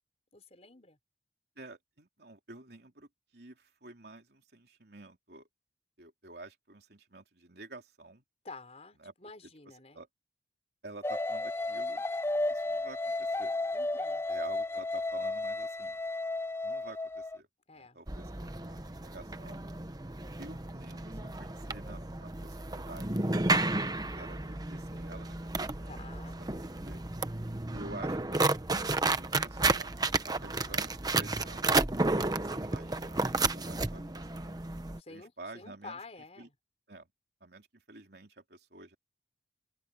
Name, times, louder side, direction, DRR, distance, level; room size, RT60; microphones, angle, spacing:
voice 1, 0.3-1.0 8.4-10.0 13.7-14.2 17.7-18.0 25.8-26.4 30.2-30.8 35.0-36.5, left 3 dB, 35° left, 4.7 m, -50 dB
voice 2, 1.6-5.5 6.0-8.2 9.0-9.1 9.4-9.5 9.9-10.1 10.8-12.1 12.5-13.6 14.3-16.0 16.6-17.5 17.7-19.6 20.4-23.4 23.7-25.9 26.4-27.0 27.7-28.4 28.7-29.9 30.2-30.9 31.2-31.7 32.4-33.2 33.5-34.6 35.1-36.0 36.4-36.5 36.9-37.1 37.4-39.0, right 2 dB, 60° right, 3.6 m, -50 dB
sound 1, 11.0-17.4, left 2 dB, 15° left, 0.4 m, -33 dB
sound 2, 18.1-35.0, right 3 dB, 20° right, 1.0 m, -32 dB
open air
head